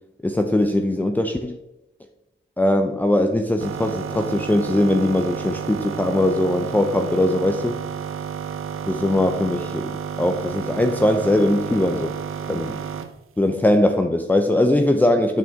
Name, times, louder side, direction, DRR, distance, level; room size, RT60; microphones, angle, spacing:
voice 1, 0.2-1.6 2.6-7.8 8.9-9.9 10.2-12.1 12.5-12.8 13.4-15.4, left 1 dB, 10° left, 5 dB, 0.5 m, -20 dB
sound 1, 3.6-13.2, right 7 dB, 80° right, 0.7 m, -31 dB
8.4 x 6.2 x 3.6 m, 0.93 s
cardioid pair, 95°, 21 cm